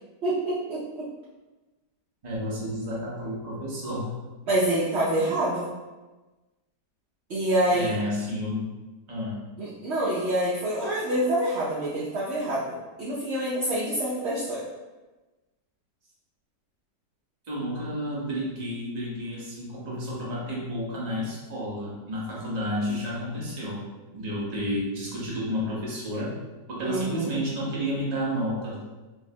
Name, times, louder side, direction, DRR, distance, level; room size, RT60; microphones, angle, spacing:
voice 1, 0.2-1.1 4.5-5.7 7.3-7.9 9.6-14.6 26.8-27.3, right 1 dB, 65° right, -8 dB, 0.6 m, -26 dB
voice 2, 2.2-4.1 7.7-8.7 9.1-9.4 17.5-23.9 24.1-26.3 26.7-28.8, equal, 35° right, -6 dB, 0.7 m, -31 dB
5.2 x 2.0 x 2.7 m, 1.2 s
omnidirectional pair, 1.9 m